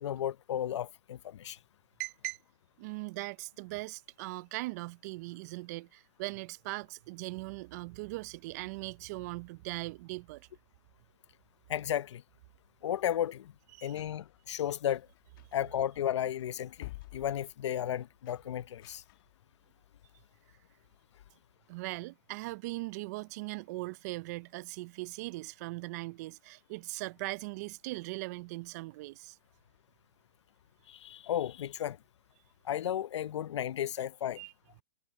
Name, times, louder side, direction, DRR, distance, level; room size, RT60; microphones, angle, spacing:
voice 1, 0.0-1.6 11.7-12.2 12.8-13.5 13.8-15.1 15.5-19.0 30.9-32.0 32.6-34.4, left 11 dB, 75° left, 0.6 m, -34 dB
voice 2, 2.0-2.4 2.8-10.5 13.7-14.0 21.7-29.4 34.4-34.5, right 22 dB, 35° right, 0.4 m, -40 dB
sound 1, 13.3-19.4, left 19 dB, 45° left, 2.2 m, -52 dB
hypercardioid pair, 150°, 15 cm